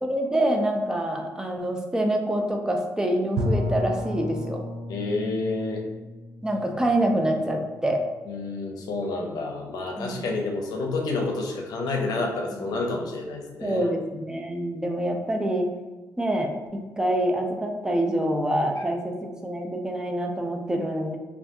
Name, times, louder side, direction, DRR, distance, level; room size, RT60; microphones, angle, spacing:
voice 1, 0.0-4.6 6.4-8.0 10.0-10.2 13.6-15.7 16.2-21.2, right 1 dB, 10° right, 2 dB, 0.4 m, -26 dB
Bowed string instrument, 3.4-8.2, left 1 dB, 80° right, 0.4 m, -32 dB
voice 2, 4.9-5.8 8.3-13.9, left 3 dB, 80° left, 1 dB, 0.5 m, -29 dB
3.4 x 2.3 x 2.6 m, 1.2 s
cardioid pair, 115°, 7 cm